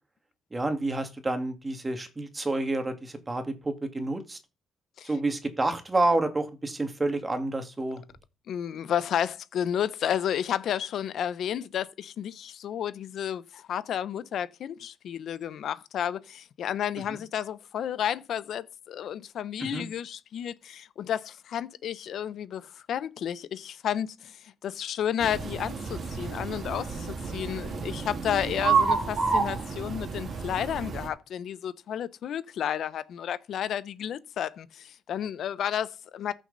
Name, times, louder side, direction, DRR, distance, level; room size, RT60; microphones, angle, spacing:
voice 1, 0.5-4.4 5.0-8.0 17.1-17.2 19.6-19.8, right 2 dB, 20° right, 2.1 m, -29 dB
voice 2, 8.5-36.3, left 9 dB, 70° left, 0.8 m, -32 dB
sound 1, 25.2-31.1, right 5 dB, 55° right, 2.4 m, -30 dB
14.0 x 6.4 x 4.0 m
cardioid pair, 90°, 0 cm